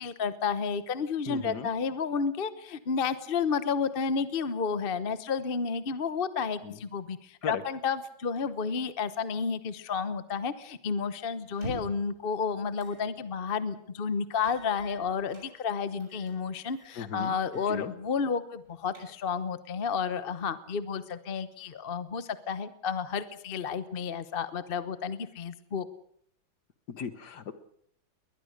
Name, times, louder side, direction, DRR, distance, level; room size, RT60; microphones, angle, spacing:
voice 1, 0.0-25.9, left 5 dB, 40° left, 13 dB, 0.9 m, -31 dB
voice 2, 1.3-1.7 6.6-6.8 7.4-7.6 16.9-17.4 17.7-17.9 27.0-27.5, left 6 dB, 55° left, 12 dB, 1.7 m, -37 dB
sound 1, 11.5-12.1 12.8-13.0 13.4-13.5 14.4-15.5 16.0-16.4 16.7-17.0 17.4-17.7 18.1-18.2 18.6-19.4, equal, 40° right, 7.3 m, -45 dB
22.0 x 20.0 x 6.6 m, 0.67 s
omnidirectional pair, 2.2 m